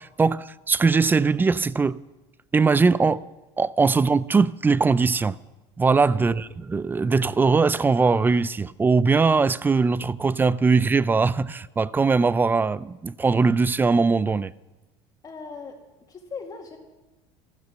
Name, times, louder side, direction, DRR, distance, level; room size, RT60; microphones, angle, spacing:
voice 1, 0.0-2.0 2.5-3.2 3.6-5.4 5.8-14.5, right 4 dB, 15° right, 0.4 m, -21 dB
voice 2, 15.2-15.7 16.1-16.8, left 5 dB, 30° left, 2.4 m, -38 dB
14.5 x 14.0 x 6.3 m
supercardioid pair, 115°, 13 cm